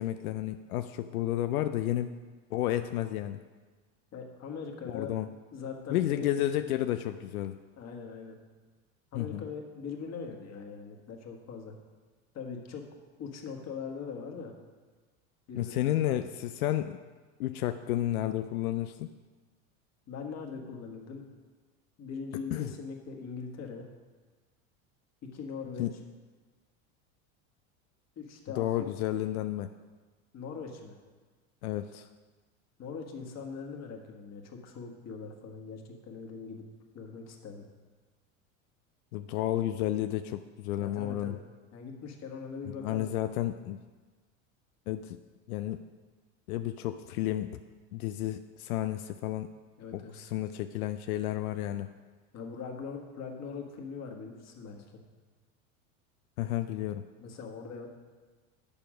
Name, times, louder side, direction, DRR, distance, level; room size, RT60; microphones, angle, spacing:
voice 1, 0.0-2.1 2.5-3.4 4.9-5.3 5.9-7.6 9.1-9.4 15.6-17.0 17.4-19.1 22.5-22.7 25.8-25.9 28.6-29.7 31.6-32.1 39.1-41.4 42.8-43.8 44.9-45.2 45.5-45.8 46.5-47.5 47.9-49.5 49.9-51.9 56.4-57.1, left 13 dB, 85° left, 9 dB, 0.5 m, -31 dB
voice 2, 4.1-5.1 5.5-6.3 7.8-8.3 9.1-11.7 12.3-12.9 13.2-14.5 15.5-15.7 16.0-16.2 20.1-21.3 22.0-23.9 25.2-25.9 28.1-28.9 30.3-31.0 32.8-36.6 36.9-37.6 40.8-41.4 41.7-43.1 49.8-50.2 52.3-55.0 57.2-57.9, left 5 dB, 40° left, 2 dB, 1.6 m, -41 dB
8.4 x 7.0 x 5.1 m, 1.4 s
hypercardioid pair, 100°, 42 cm